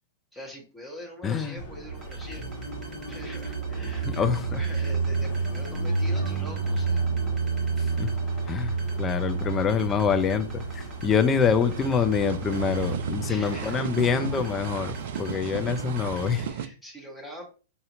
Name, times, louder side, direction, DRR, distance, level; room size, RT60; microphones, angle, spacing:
voice 1, 0.3-2.5 3.1-7.0 11.2-11.3 13.3-13.8 16.4-17.5, equal, 5° left, -1 dB, 1.0 m, -43 dB
voice 2, 1.2-1.6 4.1-4.4 7.8-8.1 8.5-14.9 15.2-16.4, left 6 dB, 20° left, 9 dB, 0.5 m, -25 dB
Car passing by, 1.6-16.5, right 4 dB, 60° left, 1.3 m, -31 dB
sound 1, 1.9-16.3, right 2 dB, 25° right, 1.1 m, -48 dB
sound 2, 8.3-16.7, right 8 dB, 55° right, 0.3 m, -37 dB
4.2 x 2.7 x 2.5 m, 0.36 s
figure-of-eight pair, 105°, 0 cm